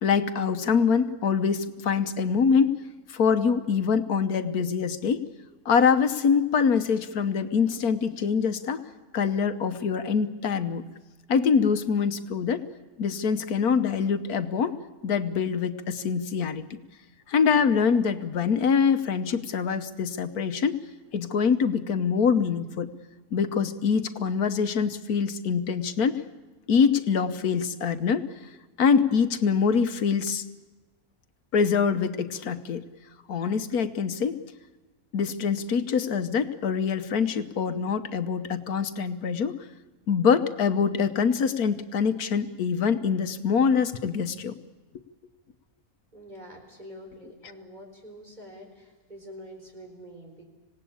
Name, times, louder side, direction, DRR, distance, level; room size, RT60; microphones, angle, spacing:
voice 1, 0.0-2.8 3.1-5.3 5.6-8.8 9.1-10.8 11.3-12.6 13.0-14.8 15.0-16.6 17.3-20.8 21.1-22.9 23.3-26.2 26.7-28.3 28.8-30.4 31.5-32.8 33.3-34.5 35.1-39.5 40.1-44.6, left 6 dB, 85° left, 10 dB, 1.5 m, -24 dB
voice 2, 46.1-50.5, equal, 30° right, 2 dB, 4.5 m, -46 dB
26.5 x 18.0 x 8.6 m, 1.2 s
omnidirectional pair, 1.5 m